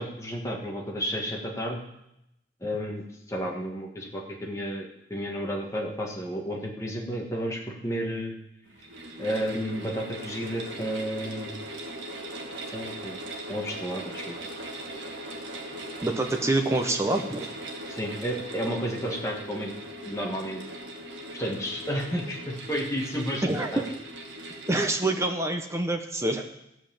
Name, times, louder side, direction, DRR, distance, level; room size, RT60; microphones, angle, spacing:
voice 1, 0.0-1.9 2.6-8.3 9.2-11.6 12.7-13.2 13.5-14.4 17.9-19.7 20.1-20.6 21.3-23.4 23.7-23.8, equal, 15° left, -1 dB, 1.7 m, -32 dB
sound 1, 8.6-24.9, right 1 dB, 70° right, 1.6 m, -39 dB
voice 2, 16.0-17.5 23.4-23.8 24.7-26.4, right 2 dB, 15° right, 4 dB, 1.0 m, -26 dB
14.5 x 5.8 x 7.2 m, 0.85 s
head